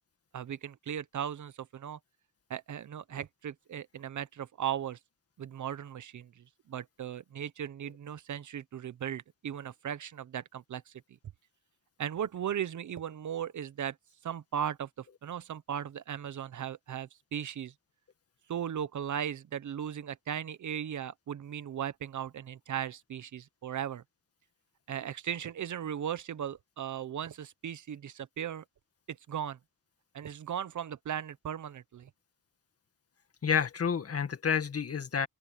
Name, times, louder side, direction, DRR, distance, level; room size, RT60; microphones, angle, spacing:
voice 1, 0.3-2.0 2.5-5.0 5.4-10.9 12.0-14.0 14.2-17.7 18.5-24.0 24.9-28.6 29.1-29.6 30.1-32.1, right 9 dB, 55° right, 1.0 m, -37 dB
voice 2, 33.4-35.3, left 7 dB, 40° left, 2.0 m, -29 dB
open air
cardioid pair, 110°, 35 cm